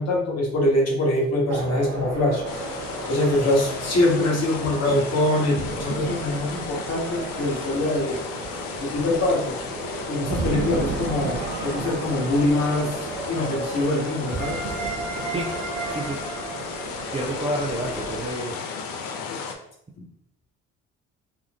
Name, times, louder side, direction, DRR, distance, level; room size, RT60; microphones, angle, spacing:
voice 1, 0.0-2.4 3.1-8.2 8.8-9.5 10.1-13.0 13.3-14.6, left 1 dB, 40° left, -2 dB, 1.2 m, -23 dB
sound 1, 1.5-18.3, right 3 dB, 85° right, 0.7 m, -33 dB
sound 2, 2.4-19.5, left 5 dB, 60° left, 0.6 m, -35 dB
voice 2, 17.1-18.6, right 1 dB, 15° right, -1 dB, 0.5 m, -29 dB
3.6 x 2.4 x 2.4 m, 0.74 s
hypercardioid pair, 55°, 39 cm